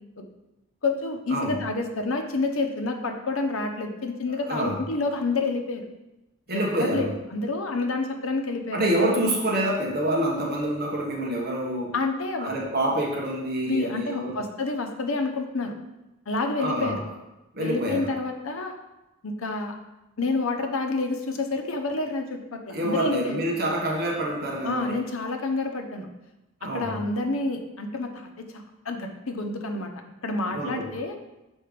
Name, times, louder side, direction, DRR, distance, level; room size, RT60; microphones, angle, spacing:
voice 1, 0.8-5.8 6.5-9.0 11.9-12.5 13.7-15.7 16.3-17.0 17.6-18.8 19.2-19.7 20.2-23.4 24.6-26.1 26.6-29.9 30.2-31.2, left 3 dB, 75° left, 5 dB, 0.8 m, -29 dB
voice 2, 4.3-4.8 6.5-7.1 8.7-11.9 12.4-14.3 16.6-17.0 17.5-18.1 22.7-25.0 26.6-26.9 30.5-31.0, right 1 dB, 45° right, -2 dB, 1.3 m, -27 dB
6.3 x 4.3 x 5.1 m, 0.98 s
head